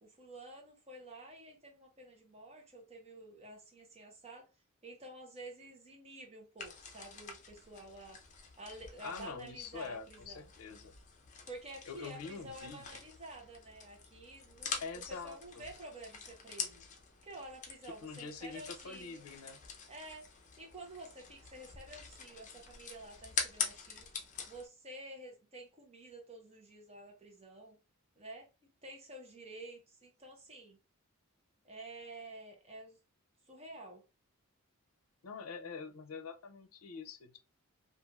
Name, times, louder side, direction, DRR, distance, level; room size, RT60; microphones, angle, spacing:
voice 1, 0.0-4.5 4.8-8.2 8.6-10.5 11.5-16.9 17.2-19.2 19.9-20.3 20.6-24.1 24.5-27.8 28.2-28.5 28.8-30.8 31.6-33.0 33.5-34.0, right 2 dB, 30° right, 0.8 m, -50 dB
sound 1, 6.6-24.6, left 6 dB, 35° left, 0.6 m, -45 dB
voice 2, 9.0-10.9 11.9-13.0 14.8-15.7 18.0-19.6 35.2-37.4, left 5 dB, 80° left, 0.5 m, -45 dB
3.2 x 2.4 x 2.3 m
head